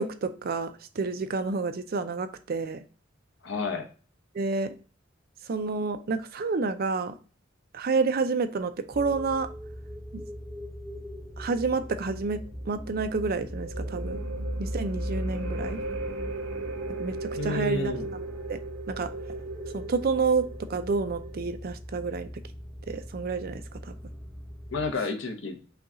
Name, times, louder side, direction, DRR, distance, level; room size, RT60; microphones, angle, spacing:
voice 1, 0.0-2.8 4.3-4.8 5.5-7.1 7.7-9.5 10.1-10.2 11.4-12.4 12.7-14.2 14.6-15.8 17.0-18.6 18.9-19.1 19.7-22.3 22.9-24.0, right 4 dB, 50° right, 9 dB, 0.5 m, -29 dB
voice 2, 3.4-3.9 17.3-18.1 24.7-25.6, left 3 dB, 70° left, 5 dB, 0.9 m, -31 dB
sound 1, 8.9-24.9, equal, ahead, 0.8 m, -42 dB
sound 2, 11.1-21.4, right 1 dB, 85° right, 0.9 m, -36 dB
5.8 x 2.3 x 3.8 m, 0.39 s
head